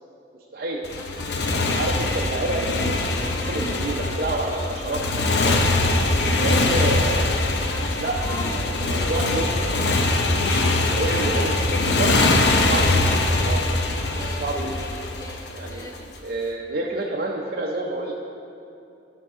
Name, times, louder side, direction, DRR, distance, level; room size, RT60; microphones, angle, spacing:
Motorcycle, 0.8-16.0, left 2 dB, 70° left, 0.6 m, -22 dB
Female singing, 0.9-9.8 10.4-13.4 13.9-16.2, equal, 20° left, 0.5 m, -41 dB
voice 1, 1.4-5.6 6.3-7.3 8.0-9.9 10.3-12.1 12.7-13.6 14.3-14.8 15.5-15.9 16.2-18.1, right 2 dB, 55° right, -3 dB, 0.6 m, -29 dB
11.5 x 5.8 x 3.7 m, 2.8 s
head